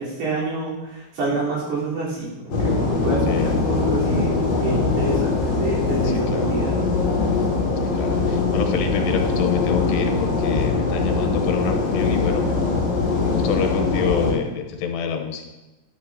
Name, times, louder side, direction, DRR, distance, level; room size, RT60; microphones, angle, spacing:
voice 1, 0.0-6.9, right 2 dB, 70° right, -8 dB, 5.9 m, -27 dB
sound 1, 2.5-14.3, left 4 dB, 45° left, 2.8 m, -22 dB
voice 2, 7.8-12.4 13.2-15.5, left 6 dB, 85° left, 5 dB, 3.1 m, -27 dB
12.5 x 10.5 x 2.8 m, 1.1 s
omnidirectional pair, 4.8 m